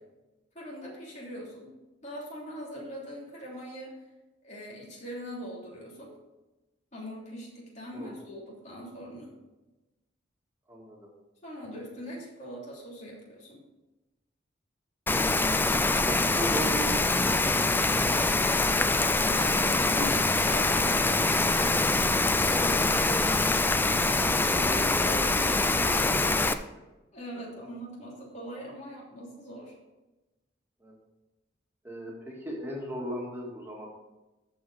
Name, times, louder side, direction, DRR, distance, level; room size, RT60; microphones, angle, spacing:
voice 1, 0.5-1.7 2.0-3.9 4.4-6.2 6.9-9.3 11.4-13.6 19.2-20.0 20.4-21.7 27.1-29.7, equal, 40° left, -4 dB, 3.1 m, -42 dB
voice 2, 10.7-11.1 16.0-17.2 19.9-20.2 20.8-20.9 22.5-23.4 24.1-26.7 27.3-27.4 30.8-31.0 31.8-33.9, equal, 10° right, -3 dB, 2.2 m, -38 dB
Rain, 15.1-26.5, left 2 dB, 10° left, 0.3 m, -24 dB
14.0 x 5.0 x 4.9 m, 1.1 s
head